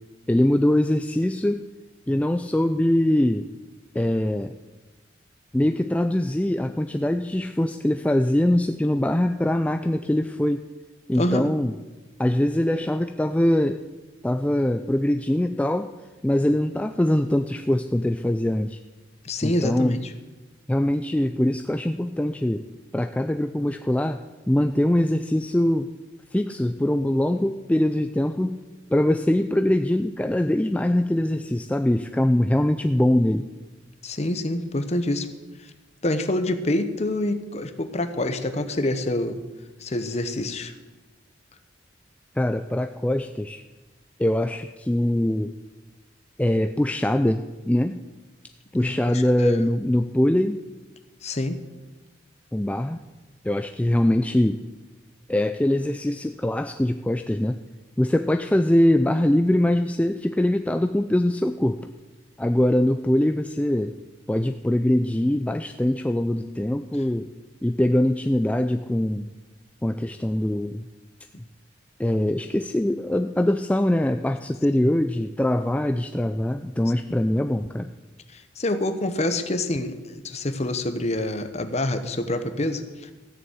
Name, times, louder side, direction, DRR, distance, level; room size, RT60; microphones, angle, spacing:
voice 1, 0.3-1.6 2.1-3.5 3.9-4.5 5.5-10.6 11.1-11.7 12.2-13.8 14.2-15.9 16.2-18.8 19.4-20.0 20.7-22.6 22.9-25.9 26.3-28.6 28.9-33.5 42.4-43.6 44.2-45.5 46.4-48.0 48.7-50.6 52.5-53.0 53.4-54.6 55.3-57.6 58.0-61.9 62.4-64.0 64.3-67.3 67.6-69.3 69.8-70.9 72.0-77.9, left 1 dB, 5° left, 7 dB, 0.3 m, -22 dB
voice 2, 11.2-11.5 19.2-20.1 34.0-35.3 36.0-39.4 39.8-40.7 48.7-49.7 51.2-51.6 78.3-83.1, left 1 dB, 35° left, 9 dB, 0.9 m, -27 dB
14.0 x 6.9 x 7.9 m, 1.2 s
head